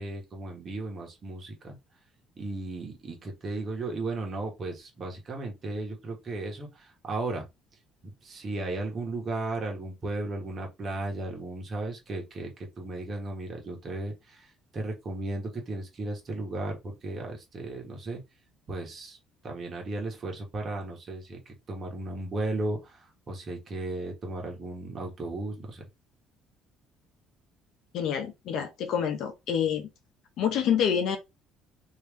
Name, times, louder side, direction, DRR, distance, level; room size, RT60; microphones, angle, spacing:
voice 1, 0.0-1.8 2.4-7.4 8.2-12.5 12.8-14.5 14.7-18.2 18.7-19.2 19.4-23.0 23.3-25.8, right 2 dB, 30° right, 1.2 m, -35 dB
voice 2, 27.9-29.9 30.4-31.2, left 8 dB, 60° left, 0.8 m, -27 dB
3.2 x 2.8 x 3.5 m
cardioid pair, 150°, 0 cm